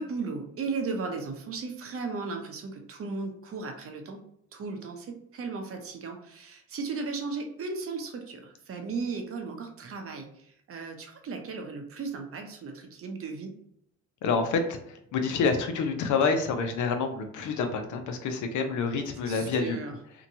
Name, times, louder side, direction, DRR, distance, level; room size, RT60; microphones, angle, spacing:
voice 1, 0.0-4.2 4.5-13.6 19.2-19.9, right 4 dB, 50° right, 4 dB, 0.7 m, -36 dB
voice 2, 14.2-19.8, left 4 dB, 75° left, 6 dB, 0.6 m, -28 dB
2.8 x 2.2 x 2.6 m, 0.71 s
cardioid pair, 90°, 30 cm